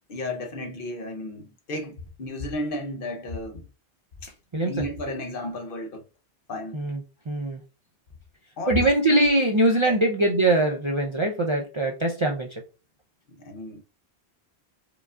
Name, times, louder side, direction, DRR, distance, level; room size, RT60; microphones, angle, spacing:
voice 1, 0.1-3.7 4.2-4.3 4.6-6.0 6.5-6.8 8.6-8.9 9.8-10.0 13.3-13.8, left 2 dB, 60° left, 0.8 m, -33 dB
voice 2, 7.3-7.6 8.7-12.5, right 2 dB, 40° right, 0.4 m, -22 dB
4.7 x 2.3 x 2.4 m
omnidirectional pair, 1.1 m